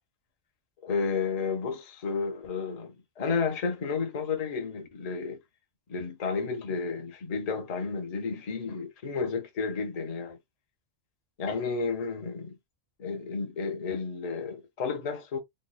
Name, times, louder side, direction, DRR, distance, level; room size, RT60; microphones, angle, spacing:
voice 1, 0.8-5.4 5.9-10.4 11.4-12.5 13.0-15.4, left 5 dB, 40° left, 0.7 m, -32 dB
3.1 x 2.0 x 3.8 m
omnidirectional pair, 1.3 m